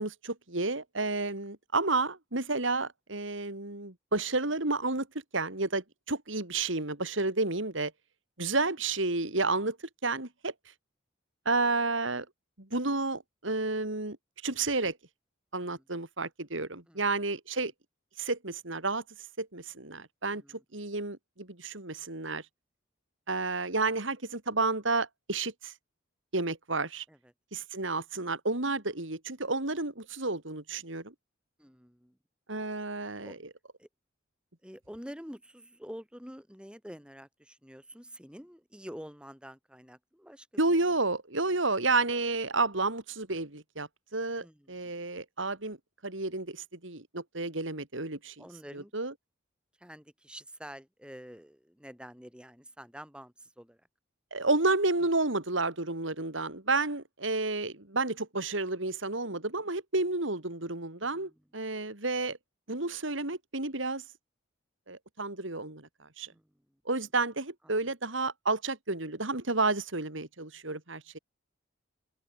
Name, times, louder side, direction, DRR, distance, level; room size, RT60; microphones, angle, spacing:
voice 1, 0.0-5.1 5.3-7.9 8.4-9.8 10.0-10.7 11.4-12.2 12.7-14.2 14.4-15.0 15.5-17.7 18.2-22.5 23.3-25.7 26.3-27.0 27.5-31.1 32.5-33.4 40.6-45.8 46.0-48.4 48.7-49.1 54.3-62.4 62.7-64.0 64.9-66.3 66.8-71.2, right 3 dB, 75° right, 3.5 m, -31 dB
voice 2, 20.3-20.6 27.1-27.2 31.6-32.2 33.2-33.4 33.8-33.9 34.6-40.5 40.9-41.0 44.4-44.9 48.4-48.9 49.8-53.8 61.0-61.3 66.3-66.4, equal, 5° right, 7.7 m, -48 dB
open air
head